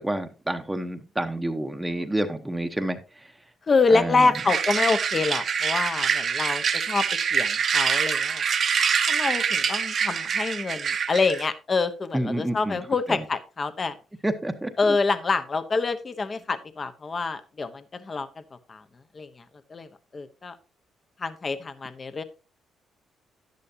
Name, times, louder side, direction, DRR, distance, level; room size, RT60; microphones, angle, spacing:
voice 1, 0.0-3.3 3.9-4.3 12.1-12.8 13.1-13.2 14.2-15.0, right 1 dB, 10° right, 6 dB, 1.0 m, -29 dB
voice 2, 3.7-7.1 7.3-8.4 9.1-14.0 14.8-18.3 18.7-18.8 19.1-19.4 19.7-19.9 20.1-20.6 21.2-22.2, left 4 dB, 35° left, 11 dB, 1.0 m, -26 dB
sound 1, 4.3-11.5, right 6 dB, 50° right, 1.0 m, -25 dB
11.0 x 10.5 x 2.8 m, 0.32 s
cardioid pair, 90°, 0 cm